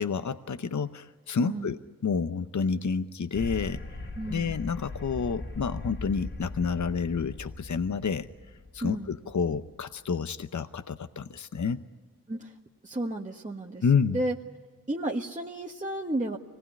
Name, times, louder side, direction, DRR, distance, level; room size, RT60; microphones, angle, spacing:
voice 1, 0.0-3.8 4.3-8.3 8.7-11.8 13.8-14.2, left 5 dB, 60° left, 11 dB, 0.8 m, -29 dB
voice 2, 1.4-1.7 4.2-4.6 8.8-9.1 12.3-12.5 12.8-14.3 14.9-16.4, right 1 dB, 20° right, -1 dB, 1.5 m, -32 dB
sound 1, 3.3-9.8, left 2 dB, 40° left, 2.4 m, -39 dB
25.0 x 19.5 x 9.9 m, 1.5 s
wide cardioid pair, 60°, 34 cm